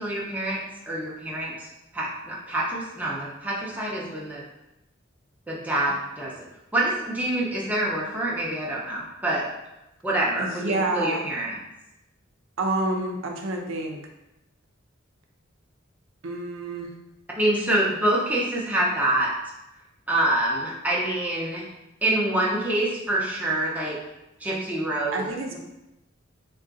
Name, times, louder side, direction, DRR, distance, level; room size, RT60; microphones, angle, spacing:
voice 1, 0.0-1.7 1.9-4.4 5.5-6.3 6.7-9.5 10.0-11.6 17.4-19.3 20.1-21.6 22.0-24.0 24.4-25.2 25.5-25.6, right 1 dB, 10° right, -5 dB, 0.6 m, -26 dB
voice 2, 10.4-11.3 12.6-14.0 16.2-16.9 25.1-25.6, right 2 dB, 85° right, 2 dB, 0.6 m, -28 dB
3.7 x 2.3 x 3.8 m, 0.93 s
head